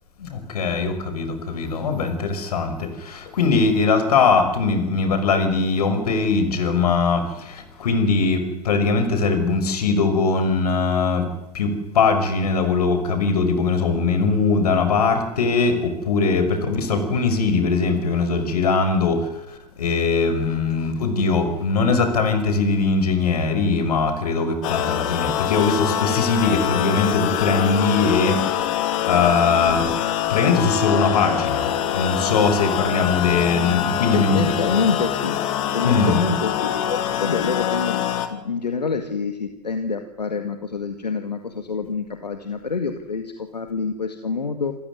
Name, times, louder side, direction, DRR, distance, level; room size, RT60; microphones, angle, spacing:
voice 1, 0.2-11.3 11.5-29.9 30.3-34.4 35.8-36.2, left 4 dB, 70° left, 9 dB, 5.6 m, -21 dB
sound 1, 24.6-38.3, left 11 dB, 55° left, 3.0 m, -24 dB
voice 2, 34.1-35.4 35.7-38.0 38.3-44.7, left 4 dB, 90° left, 7 dB, 2.1 m, -26 dB
28.0 x 15.5 x 9.7 m, 0.93 s
hypercardioid pair, 105°, 21 cm